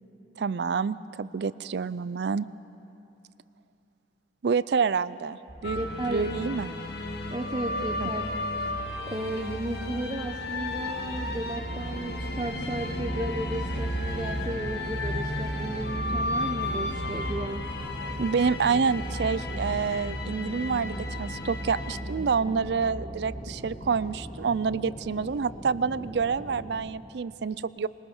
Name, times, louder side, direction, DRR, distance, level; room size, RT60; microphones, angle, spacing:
voice 1, 0.4-2.5 4.4-5.8 6.1-6.7 8.0-8.1 18.2-27.9, right 5 dB, 60° right, 18 dB, 0.4 m, -28 dB
sound 1, 5.5-24.1, right 1 dB, 10° left, 3.3 m, -38 dB
sound 2, 5.6-22.0, left 2 dB, 60° left, 1.6 m, -35 dB
voice 2, 5.7-6.3 7.3-8.3 9.0-17.7, right 1 dB, 25° right, 1 dB, 0.9 m, -34 dB
sound 3, 10.7-26.7, equal, 30° left, 3.1 m, -41 dB
21.5 x 20.5 x 6.5 m, 2.9 s
head